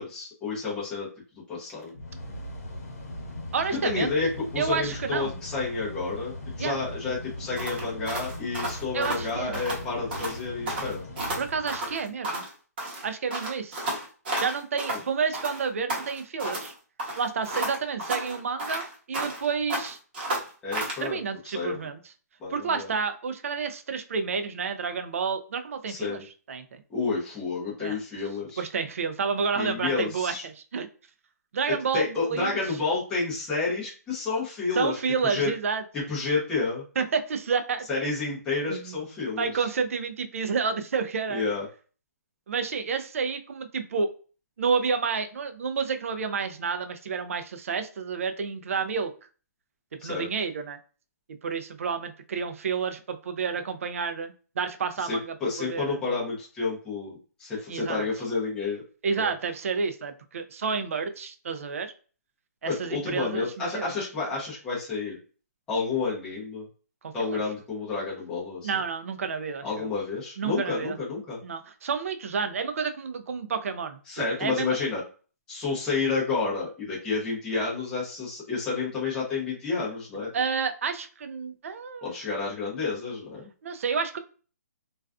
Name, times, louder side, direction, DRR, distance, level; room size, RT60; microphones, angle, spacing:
voice 1, 0.0-1.9 3.7-11.1 20.6-21.2 21.4-21.9 22.4-22.9 25.9-26.2 26.9-28.6 29.5-30.4 31.9-35.5 35.9-36.8 37.9-39.7 41.3-41.7 50.0-50.3 55.0-58.8 59.2-59.3 62.7-65.2 65.7-66.7 67.1-68.7 69.6-71.4 74.1-75.0 75.5-80.3 82.0-83.5, left 4 dB, 5° left, -7 dB, 0.6 m, -30 dB
Mechanical fan, 1.6-12.1, left 1 dB, 60° left, 0.9 m, -39 dB
voice 2, 3.5-4.1 4.6-5.4 6.6-6.8 8.9-9.6 11.4-12.4 13.0-13.8 14.4-16.7 17.2-20.0 21.0-22.0 22.5-26.2 26.5-26.8 27.8-28.0 28.6-30.9 31.5-32.5 34.8-35.8 37.0-38.1 38.7-39.0 39.4-41.4 42.5-44.1 44.6-49.1 49.9-50.8 51.4-55.3 55.7-55.9 57.7-58.1 59.0-61.9 62.6-63.9 67.0-67.4 68.6-69.9 70.4-71.0 71.4-74.8 80.3-82.1 83.6-84.2, right 5 dB, 55° right, 8 dB, 0.4 m, -30 dB
sound 1, 7.6-9.8 10.1-10.4 10.7-12.5 12.8-15.0 15.3-16.7 17.0-19.4 19.7-21.0, right 1 dB, 35° right, 0.8 m, -32 dB
2.3 x 2.3 x 2.3 m, 0.38 s
hypercardioid pair, 170°, 9 cm